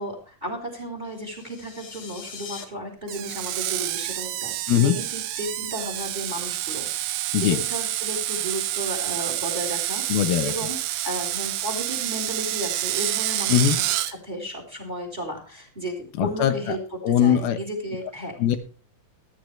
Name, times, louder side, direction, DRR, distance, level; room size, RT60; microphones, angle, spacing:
voice 1, 0.0-18.4, right 1 dB, 10° right, 3 dB, 3.7 m, -34 dB
sound 1, 1.1-2.6, left 5 dB, 45° left, 2.0 m, -42 dB
Screech, 3.1-14.1, right 14 dB, 75° right, 2.3 m, -28 dB
voice 2, 10.1-10.5 13.5-13.8 16.2-16.8 17.0-17.6 18.4-18.6, left 10 dB, 85° left, 8 dB, 3.0 m, -21 dB
14.5 x 13.5 x 3.3 m, 0.36 s
omnidirectional pair, 4.3 m